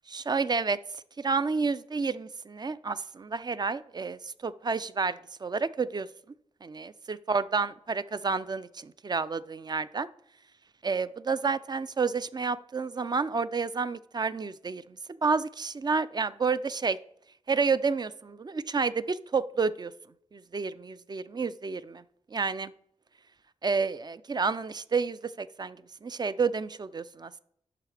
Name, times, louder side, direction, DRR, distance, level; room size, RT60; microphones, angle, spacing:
voice 1, 0.1-0.8 1.2-6.1 6.6-10.1 10.8-17.0 17.5-19.9 20.3-22.0 22.3-22.7 23.6-27.4, right 4 dB, 35° right, 15 dB, 0.3 m, -30 dB
11.0 x 5.7 x 3.3 m, 0.69 s
wide cardioid pair, 120°, 12 cm